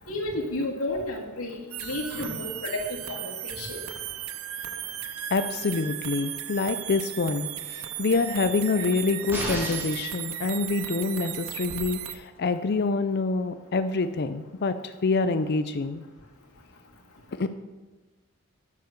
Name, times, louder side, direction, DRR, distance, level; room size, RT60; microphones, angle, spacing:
voice 1, 0.1-3.8, left 1 dB, 90° left, -1 dB, 2.1 m, -32 dB
sound 1, 1.7-12.1, right 11 dB, 75° right, 0.6 m, -36 dB
voice 2, 5.3-16.0 17.3-17.5, left 3 dB, 50° left, 10 dB, 0.5 m, -26 dB
sound 2, 9.3-10.1 11.7-11.8, equal, 10° right, 2.4 m, -32 dB
11.0 x 6.8 x 6.6 m, 1.2 s
head